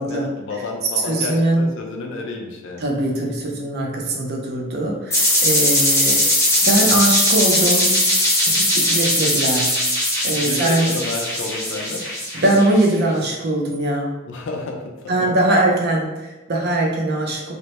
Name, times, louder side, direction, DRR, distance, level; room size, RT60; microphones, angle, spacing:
voice 1, 0.1-2.9 10.4-12.1 14.3-15.3, left 3 dB, 65° left, 1 dB, 0.4 m, -30 dB
voice 2, 1.1-1.7 2.8-6.2 6.6-7.9 8.5-9.8 10.2-10.9 12.3-14.1 15.1-17.5, right 1 dB, 55° right, -1 dB, 0.5 m, -21 dB
sound 1, 5.1-12.9, left 1 dB, 15° left, 0.6 m, -19 dB
2.1 x 2.0 x 2.8 m, 1.1 s
head